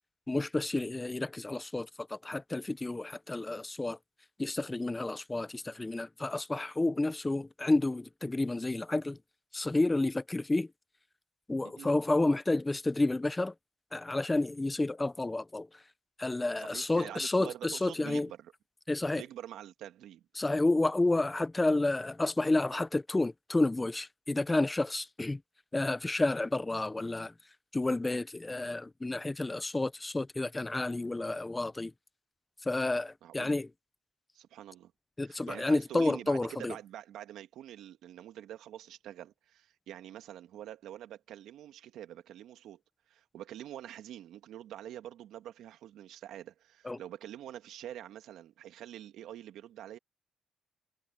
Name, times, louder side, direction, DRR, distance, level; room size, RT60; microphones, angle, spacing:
voice 1, 0.3-4.0 4.4-9.2 9.5-10.7 11.5-13.5 13.9-15.7 16.2-18.3 18.9-19.2 20.4-25.4 25.7-27.3 27.7-31.9 32.6-33.7 35.2-36.7 46.8-47.0, left 2 dB, 15° left, 0.8 m, -30 dB
voice 2, 16.6-18.5 19.1-20.2 31.1-31.4 33.2-33.6 34.3-34.9 35.3-42.8 43.1-50.0, right 12 dB, 80° right, 1.9 m, -46 dB
cardioid pair, 90°, 0 cm